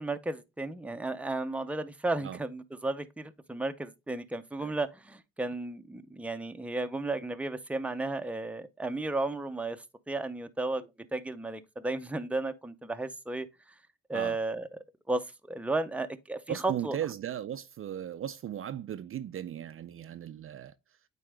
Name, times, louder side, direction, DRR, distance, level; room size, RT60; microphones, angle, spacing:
voice 1, 0.0-13.5 14.1-14.7 15.1-17.0, right 2 dB, 5° right, 0.6 m, -34 dB
voice 2, 16.5-20.7, right 10 dB, 45° right, 0.5 m, -37 dB
8.7 x 4.2 x 3.4 m
cardioid pair, 90°, 30 cm